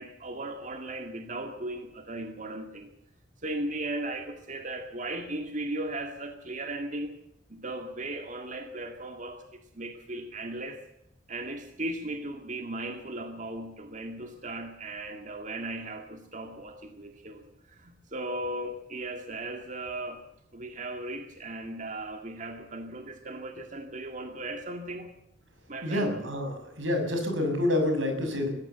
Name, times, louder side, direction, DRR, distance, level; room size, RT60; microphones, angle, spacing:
voice 1, 0.0-2.9 3.4-7.1 7.5-9.4 9.7-10.8 11.3-20.2 20.5-25.1 25.7-26.1, right 1 dB, 40° right, 5 dB, 2.1 m, -37 dB
voice 2, 25.8-28.5, left 1 dB, 90° right, 5 dB, 6.7 m, -28 dB
20.5 x 16.0 x 8.2 m, 0.80 s
head